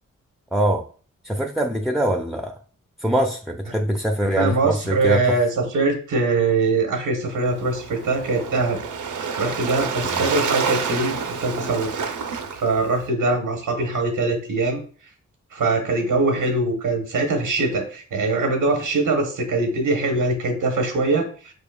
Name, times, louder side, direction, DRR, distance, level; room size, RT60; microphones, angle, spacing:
voice 1, 0.5-0.8 1.2-2.6 3.0-5.4 10.1-10.3, right 1 dB, ahead, 4 dB, 0.6 m, -23 dB
voice 2, 4.4-8.8 9.2-11.9 12.6-14.8 15.5-21.5, right 3 dB, 90° right, 3 dB, 1.1 m, -22 dB
Waves surf, 7.4-13.1, right 5 dB, 70° right, 0.7 m, -28 dB
5.2 x 4.5 x 2.3 m, 0.40 s
cardioid pair, 40°, 32 cm